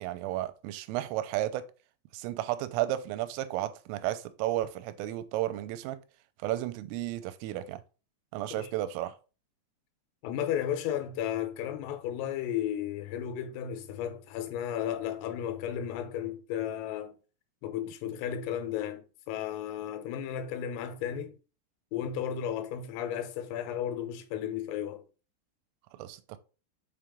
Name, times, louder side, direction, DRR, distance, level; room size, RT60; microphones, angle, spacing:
voice 1, 0.0-1.6 2.1-6.0 6.4-7.8 8.3-9.2 26.0-26.4, right 14 dB, 85° right, 3.1 m, -33 dB
voice 2, 10.2-17.2 17.6-21.4 21.9-25.0, left 10 dB, 85° left, 3.6 m, -34 dB
7.3 x 4.7 x 3.7 m
omnidirectional pair, 5.8 m